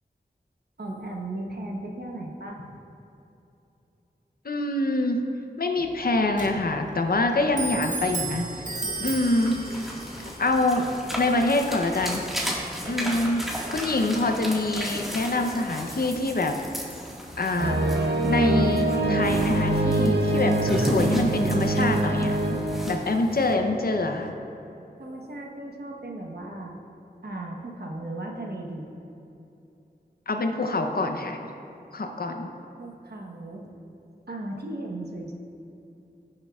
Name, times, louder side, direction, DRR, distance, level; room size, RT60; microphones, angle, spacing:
voice 1, 0.8-2.6 12.9-13.2 25.0-26.8 27.2-28.9 32.8-33.7 34.3-35.3, right 2 dB, 70° right, -1 dB, 1.1 m, -36 dB
voice 2, 4.4-5.2 5.6-8.7 9.0-10.0 10.4-10.9 11.2-12.2 12.8-13.4 13.7-16.5 17.4-17.8 18.2-22.4 22.9-24.3 30.3-31.4 31.9-32.5, left 2 dB, 60° left, 4 dB, 0.7 m, -25 dB
Clock, 5.8-15.1, right 3 dB, 45° right, 1.0 m, -37 dB
sound 1, 9.0-23.5, equal, ahead, 1.7 m, -35 dB
sound 2, 17.6-23.7 24.1-24.2, right 2 dB, 90° right, 0.8 m, -24 dB
17.0 x 6.6 x 2.4 m, 2.8 s
wide cardioid pair, 60°, 17 cm